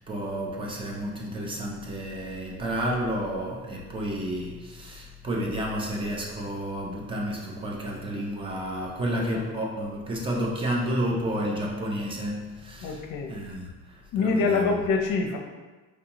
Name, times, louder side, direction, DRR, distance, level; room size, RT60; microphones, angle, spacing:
voice 1, 0.0-13.0 13.3-14.7, equal, 15° right, -1 dB, 0.4 m, -31 dB
voice 2, 12.8-13.3 14.1-15.4, left 4 dB, 55° left, 3 dB, 0.6 m, -25 dB
4.4 x 2.7 x 2.9 m, 1.2 s
cardioid pair, 160°, 39 cm